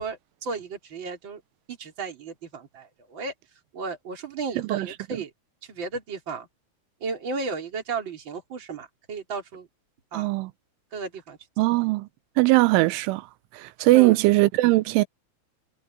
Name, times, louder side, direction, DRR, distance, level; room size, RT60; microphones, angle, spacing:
voice 1, 0.0-1.4 1.7-3.3 3.7-5.3 5.6-6.5 7.0-9.7 10.1-10.4 10.9-11.4 13.9-14.2, right 4 dB, 25° right, 3.8 m, -34 dB
voice 2, 10.1-10.5 11.6-12.1 12.4-13.3 13.5-15.0, right 20 dB, 90° right, 3.3 m, -20 dB
omnidirectional pair, 5.4 m